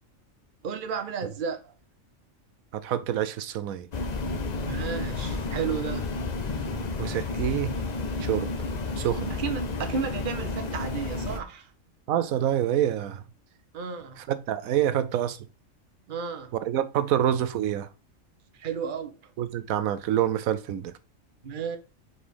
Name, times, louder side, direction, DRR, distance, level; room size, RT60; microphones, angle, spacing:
voice 1, 0.6-1.7 4.6-6.2 9.4-11.7 13.7-14.2 16.1-16.5 18.6-19.2 21.4-21.8, right 6 dB, 45° right, 0.9 m, -33 dB
voice 2, 2.7-3.9 7.0-7.8 8.2-8.5 9.0-9.3 12.1-13.2 14.3-15.4 16.5-17.9 19.4-20.9, right 11 dB, 85° right, 1.0 m, -26 dB
sound 1, 3.9-11.4, left 3 dB, 40° left, 0.7 m, -31 dB
4.8 x 4.2 x 5.1 m
omnidirectional pair, 1.4 m